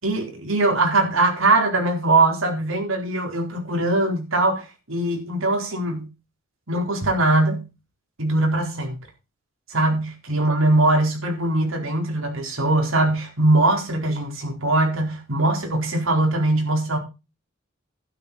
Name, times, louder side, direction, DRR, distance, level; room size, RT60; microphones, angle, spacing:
voice 1, 0.0-6.1 6.7-7.6 8.2-9.0 9.7-17.0, right 2 dB, 75° right, 2 dB, 4.2 m, -21 dB
12.0 x 10.5 x 4.1 m, 0.28 s
head